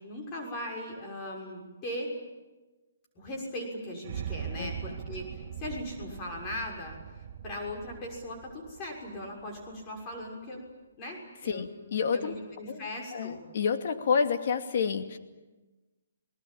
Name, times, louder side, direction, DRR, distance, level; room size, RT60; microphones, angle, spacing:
voice 1, 0.0-2.1 3.1-10.6 11.0-11.7 12.1-13.4, left 1 dB, 25° left, 0 dB, 6.5 m, -39 dB
sound 1, 4.0-10.2, right 8 dB, 45° right, 4.3 m, -41 dB
voice 2, 4.6-5.0 11.5-12.3 12.7-12.9 13.1-15.2, left 6 dB, 55° left, 6 dB, 2.4 m, -29 dB
29.0 x 20.0 x 8.8 m, 1.2 s
hypercardioid pair, 155°, 0 cm